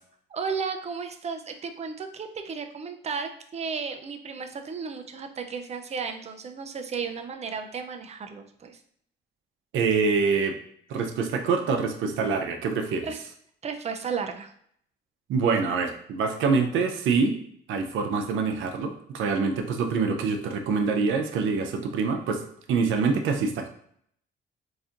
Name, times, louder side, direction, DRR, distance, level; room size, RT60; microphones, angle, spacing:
voice 1, 0.3-8.8 13.0-13.2 13.6-14.5, right 5 dB, 35° right, 5 dB, 0.5 m, -34 dB
voice 2, 9.7-10.6 10.9-13.1 15.3-17.4 17.7-22.4 22.7-23.7, right 4 dB, 80° right, 5 dB, 0.6 m, -25 dB
4.0 x 2.6 x 2.5 m, 0.67 s
cardioid pair, 90°, 20 cm